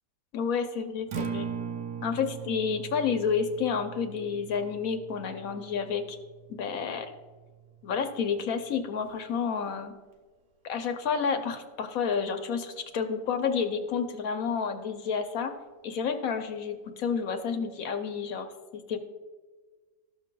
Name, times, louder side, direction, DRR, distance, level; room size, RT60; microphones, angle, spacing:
voice 1, 0.3-1.5 2.0-6.2 6.5-7.1 7.8-9.9 10.6-15.5 15.8-19.0, left 6 dB, 65° left, 6 dB, 1.0 m, -30 dB
Acoustic guitar, 1.0-9.2, right 7 dB, 85° right, 1.3 m, -41 dB
13.5 x 6.3 x 2.2 m, 1.4 s
omnidirectional pair, 1.8 m